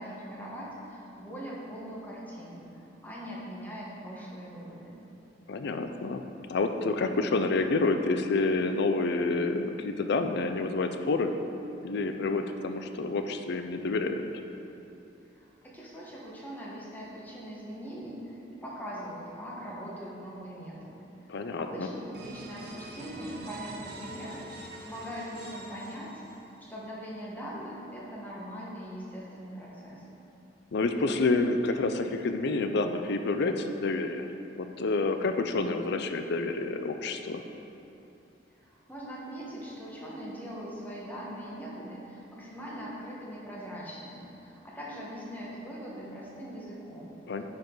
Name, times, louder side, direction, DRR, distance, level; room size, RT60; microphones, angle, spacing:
voice 1, 0.0-5.0 15.3-26.2 26.6-30.1 38.6-47.2, equal, 10° left, -5 dB, 1.4 m, -41 dB
voice 2, 5.5-6.2 6.5-11.3 11.8-14.2 21.3-21.9 30.7-34.3 34.6-37.4 47.3-47.4, left 3 dB, 65° left, 7 dB, 0.5 m, -28 dB
sound 1, 22.1-26.7, right 2 dB, 60° right, 0.9 m, -45 dB
9.4 x 4.9 x 3.9 m, 2.8 s
head